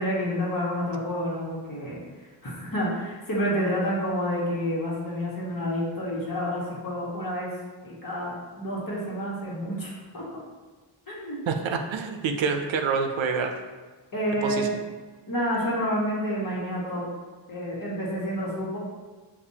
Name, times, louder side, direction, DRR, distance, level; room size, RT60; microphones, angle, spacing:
voice 1, 0.0-7.5 7.8-10.3 11.1-11.4 14.1-14.8 15.3-17.0 17.5-18.8, equal, 45° left, -5 dB, 1.4 m, -29 dB
voice 2, 11.5-13.5 14.4-14.7, right 5 dB, 80° right, 5 dB, 0.6 m, -27 dB
6.7 x 2.6 x 2.8 m, 1.3 s
wide cardioid pair, 115°, 46 cm